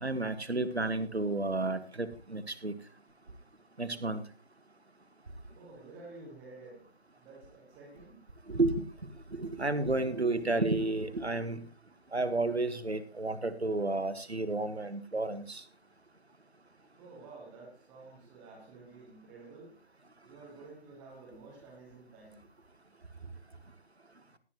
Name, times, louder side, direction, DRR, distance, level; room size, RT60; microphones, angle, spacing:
voice 1, 0.0-2.7 3.8-4.2 8.5-8.8 9.3-11.6 12.1-15.6, right 2 dB, 90° right, 1.5 m, -31 dB
voice 2, 5.5-6.9 7.1-8.2 17.0-19.8 20.2-22.4, right 3 dB, 5° right, 1.1 m, -51 dB
17.5 x 9.4 x 2.9 m
figure-of-eight pair, 160°, 31 cm